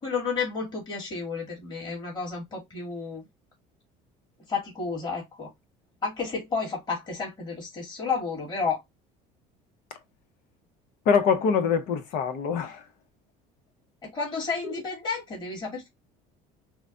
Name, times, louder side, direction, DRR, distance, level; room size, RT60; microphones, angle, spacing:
voice 1, 0.0-3.2 4.5-5.5 6.0-8.8 14.0-15.9, left 4 dB, 30° left, 2.1 m, -31 dB
voice 2, 11.0-12.9, left 6 dB, 65° left, 0.9 m, -24 dB
4.9 x 2.2 x 2.4 m
cardioid pair, 130°, 16 cm